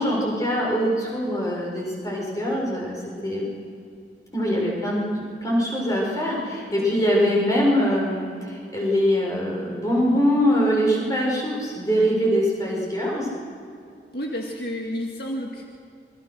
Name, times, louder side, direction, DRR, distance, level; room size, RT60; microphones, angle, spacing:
voice 1, 0.0-3.0 3.2-3.5 4.3-13.3, equal, 20° left, -3 dB, 6.8 m, -23 dB
voice 2, 14.1-15.6, equal, 60° left, 0 dB, 2.2 m, -31 dB
27.5 x 23.0 x 6.5 m, 2.4 s
head